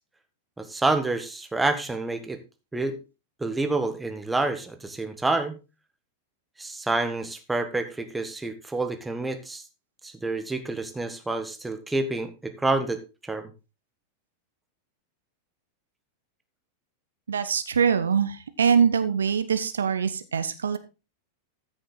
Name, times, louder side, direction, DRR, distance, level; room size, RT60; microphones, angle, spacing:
voice 1, 0.6-2.4 2.7-3.0 3.4-5.6 6.6-9.6 10.0-13.5, right 2 dB, 10° right, 8 dB, 1.5 m, -28 dB
voice 2, 17.3-20.8, right 6 dB, 70° right, 11 dB, 1.1 m, -23 dB
14.0 x 6.5 x 4.0 m, 0.29 s
figure-of-eight pair, 90°, 0 cm